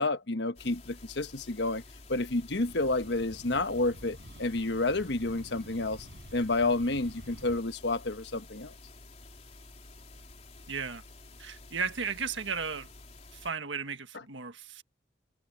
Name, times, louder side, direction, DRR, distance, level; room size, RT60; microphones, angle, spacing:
voice 1, 0.0-1.8 2.1-6.1 6.3-8.7, left 2 dB, 70° left, 1.2 m, -30 dB
sound 1, 0.6-13.5, left 2 dB, 35° left, 3.9 m, -51 dB
sound 2, 2.5-7.6, equal, 70° right, 6.1 m, -50 dB
voice 2, 10.7-11.0 11.4-12.9 13.3-14.8, right 5 dB, 85° right, 1.7 m, -35 dB
head